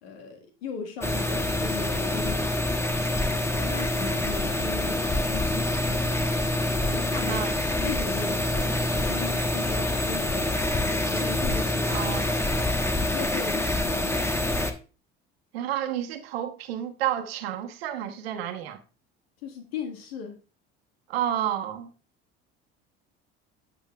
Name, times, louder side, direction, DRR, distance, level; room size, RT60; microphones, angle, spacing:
voice 1, 0.0-2.6 3.1-6.3 6.8-7.5 7.8-10.5 10.8-12.0 13.0-14.6 19.4-20.4, left 5 dB, 90° left, 1.7 m, -38 dB
sound 1, 1.0-14.7, left 1 dB, 10° left, 1.1 m, -26 dB
voice 2, 11.9-12.3 15.5-18.8 21.1-21.9, right 11 dB, 90° right, 1.0 m, -30 dB
8.7 x 8.4 x 2.3 m
hypercardioid pair, 80°, 30 cm